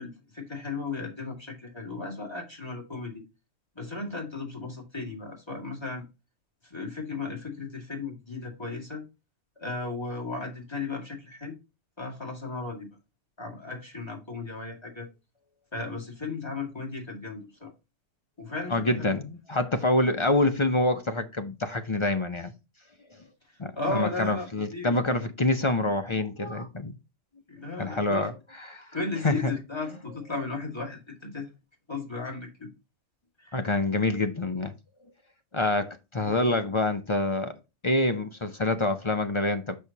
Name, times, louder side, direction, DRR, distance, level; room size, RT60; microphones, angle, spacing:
voice 1, 0.0-3.2 3.8-6.1 6.6-9.1 9.6-11.6 12.0-12.9 13.4-15.1 15.7-17.7 18.4-19.1 23.5-24.9 27.5-28.3 28.9-31.5 31.9-32.7 33.4-33.6 36.2-36.5, left 3 dB, 20° left, 2.1 m, -35 dB
voice 2, 18.7-22.5 23.6-27.0 27.8-28.9 29.2-29.5 33.5-34.7 35.5-37.5 37.8-39.8, left 2 dB, 40° left, 0.4 m, -26 dB
6.4 x 5.9 x 2.8 m
omnidirectional pair, 1.3 m